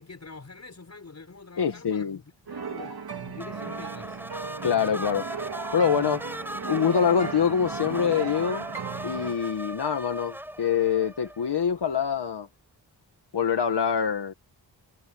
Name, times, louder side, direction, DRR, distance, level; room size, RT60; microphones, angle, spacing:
voice 1, 0.0-3.0 3.2-4.2, left 4 dB, 40° left, 6.6 m, -45 dB
voice 2, 1.6-2.2 4.6-5.3 5.7-6.2 6.7-8.7 9.0-12.5 13.3-14.3, left 7 dB, 65° left, 2.0 m, -25 dB
sound 1, 2.5-9.3, right 6 dB, 55° right, 3.2 m, -36 dB
sound 2, 3.4-11.8, equal, 5° right, 7.3 m, -38 dB
wide cardioid pair, 115°, 44 cm